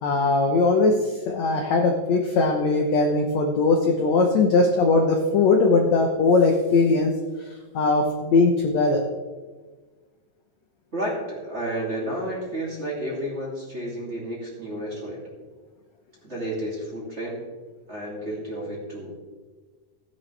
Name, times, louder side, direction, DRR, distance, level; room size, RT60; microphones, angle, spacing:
voice 1, 0.0-7.1 7.7-9.0, left 3 dB, 70° left, 3 dB, 1.7 m, -20 dB
voice 2, 10.9-15.2 16.2-17.4 17.9-19.2, right 1 dB, 20° right, -5 dB, 2.5 m, -31 dB
16.5 x 10.0 x 3.4 m, 1.3 s
omnidirectional pair, 4.3 m